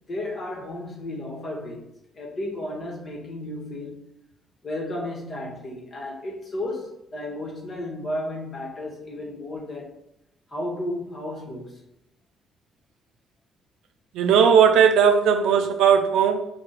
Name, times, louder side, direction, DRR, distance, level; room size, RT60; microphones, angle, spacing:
voice 1, 0.1-4.1 4.6-10.0 10.5-11.8, left 1 dB, 45° left, 1.1 m, -33 dB
voice 2, 14.1-16.5, right 7 dB, 90° right, 0.4 m, -17 dB
3.9 x 2.2 x 3.9 m
cardioid pair, 90°, 0 cm